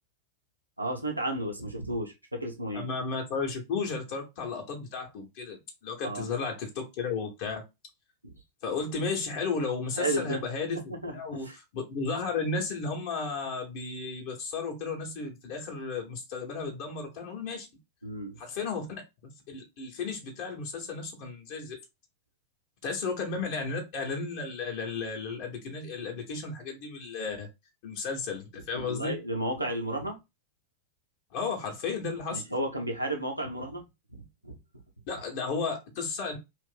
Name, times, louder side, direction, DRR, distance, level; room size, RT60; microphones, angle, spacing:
voice 1, 0.8-2.9 6.0-6.3 8.2-8.3 10.0-10.4 10.9-11.6 18.0-18.4 28.7-30.2 32.3-33.8 34.4-34.6, right 1 dB, 85° right, 0.8 m, -33 dB
voice 2, 2.7-7.6 8.6-17.7 18.4-18.9 19.5-21.7 22.8-27.5 27.8-29.2 31.3-32.4 35.1-36.4, left 4 dB, 50° left, 0.9 m, -34 dB
2.6 x 2.5 x 3.7 m
figure-of-eight pair, 90°, 0 cm